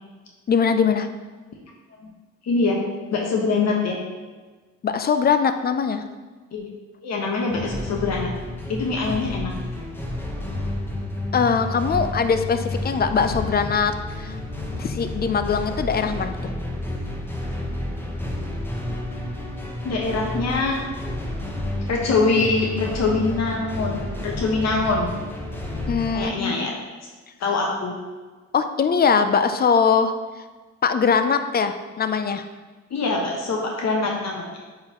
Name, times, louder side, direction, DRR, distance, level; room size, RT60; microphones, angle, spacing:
voice 1, 0.5-1.1 4.8-6.0 11.3-14.3 14.8-16.5 25.9-26.5 28.5-30.1 30.8-32.5, left 6 dB, 35° left, 9 dB, 0.4 m, -21 dB
voice 2, 2.4-2.8 3.1-4.0 6.5-6.7 7.0-8.3 8.7-9.5 19.8-20.8 21.9-25.1 26.1-26.7 27.4-27.9 32.9-34.4, left 3 dB, 60° left, -1 dB, 1.1 m, -23 dB
sound 1, 7.5-26.3, left 1 dB, 5° left, 0.9 m, -30 dB
8.4 x 3.8 x 3.0 m, 1.3 s
cardioid pair, 90°, 30 cm